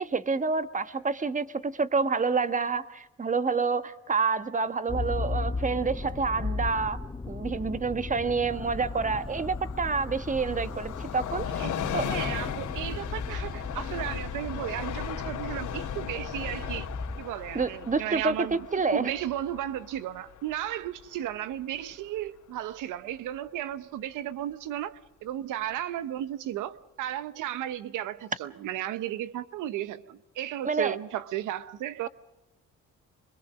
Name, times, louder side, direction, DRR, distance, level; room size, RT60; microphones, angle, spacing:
voice 1, 0.0-7.0 7.3-11.4 11.9-12.1 17.5-19.1 30.6-31.0, right 4 dB, 25° right, 1.3 m, -28 dB
Motor vehicle (road), 4.9-17.2, left 3 dB, 15° left, 0.9 m, -36 dB
Train, 8.5-21.8 22.2-22.3, left 9 dB, 80° left, 2.8 m, -37 dB
voice 2, 12.0-16.9 17.2-18.7 18.9-32.1, right 12 dB, 85° right, 0.9 m, -34 dB
25.5 x 22.5 x 6.2 m
cardioid pair, 90°, 30 cm